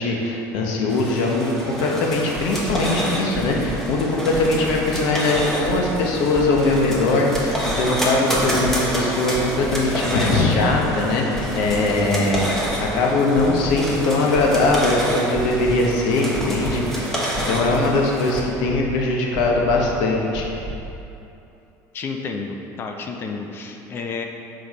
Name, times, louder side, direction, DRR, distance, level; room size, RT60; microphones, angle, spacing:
voice 1, 0.0-17.1 17.5-20.5, left 2 dB, 75° left, -1 dB, 0.9 m, -21 dB
sound 1, 0.9-18.4, equal, 5° left, 1.0 m, -28 dB
sound 2, 2.4-2.8 3.3-3.8 4.3-4.8 5.3-5.8 6.3-6.8 7.3-7.8 8.3-8.8 9.3-9.8 10.3-10.8 11.3-11.8 12.3-12.8 13.3-13.8 14.3-14.8 15.3-15.8 16.3-16.8 17.3-17.8 18.3-18.8 19.3-19.8 20.3-20.8, right 2 dB, 20° right, 0.6 m, -32 dB
voice 2, 21.9-24.3, left 4 dB, 30° left, 3 dB, 0.5 m, -31 dB
5.9 x 5.1 x 4.1 m, 2.9 s
cardioid pair, 155°, 8 cm